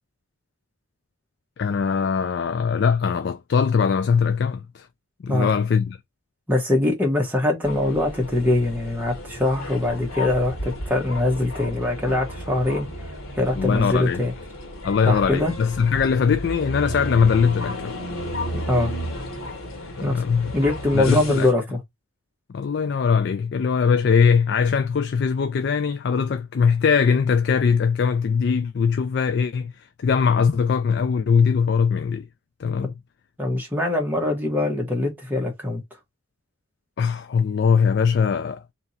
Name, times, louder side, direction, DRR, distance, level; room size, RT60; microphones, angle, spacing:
voice 1, 1.6-4.9 5.2-6.0 13.6-14.2 14.8-18.0 20.0-20.5 20.9-21.5 22.5-29.7 30.0-32.3 32.6-32.9 37.0-38.6, left 6 dB, 50° left, 0.3 m, -21 dB
voice 2, 6.5-12.9 13.4-14.3 15.1-15.5 18.7-18.9 20.0-20.2 20.5-21.8 33.4-35.8, left 2 dB, 10° right, 1.2 m, -22 dB
sound 1, 7.6-21.5, equal, 90° left, 1.4 m, -33 dB
3.5 x 2.9 x 4.2 m
head